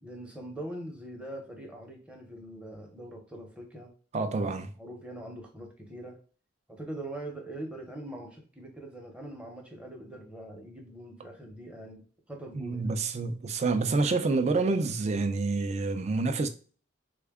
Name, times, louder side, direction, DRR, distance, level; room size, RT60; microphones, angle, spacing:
voice 1, 0.0-3.9 4.2-4.3 4.8-6.2 6.7-12.9, right 1 dB, 5° right, 0.7 m, -42 dB
voice 2, 4.1-4.7 12.5-16.5, right 3 dB, 35° right, 0.3 m, -28 dB
3.4 x 2.2 x 3.5 m
head